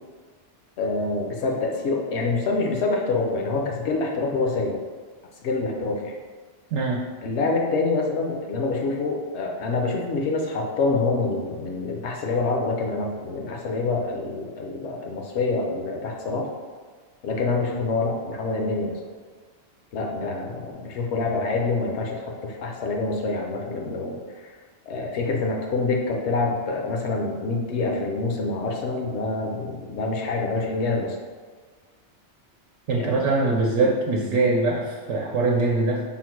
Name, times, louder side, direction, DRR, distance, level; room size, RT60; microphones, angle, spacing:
voice 1, 0.8-4.8 5.4-6.1 7.2-16.5 17.2-19.0 19.9-24.2 24.4-24.5 24.9-31.2 32.9-33.3, left 3 dB, 75° left, 1 dB, 0.9 m, -26 dB
voice 2, 6.7-7.1 32.9-36.0, right 3 dB, 90° right, -3 dB, 0.9 m, -22 dB
3.8 x 2.1 x 4.4 m, 1.5 s
omnidirectional pair, 1.2 m